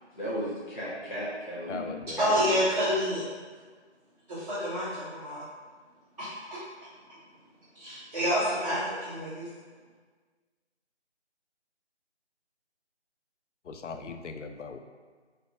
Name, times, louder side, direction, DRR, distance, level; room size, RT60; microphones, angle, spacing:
voice 1, 0.1-1.9 2.2-2.5, equal, 45° left, -8 dB, 1.4 m, -34 dB
voice 2, 1.7-2.2 13.6-14.8, left 4 dB, 85° left, 6 dB, 0.5 m, -39 dB
voice 3, 2.2-3.2 4.3-5.4 6.2-6.6 7.7-9.5, equal, 35° right, -12 dB, 0.9 m, -28 dB
3.9 x 3.3 x 2.8 m, 1.5 s
figure-of-eight pair, 170°, 35 cm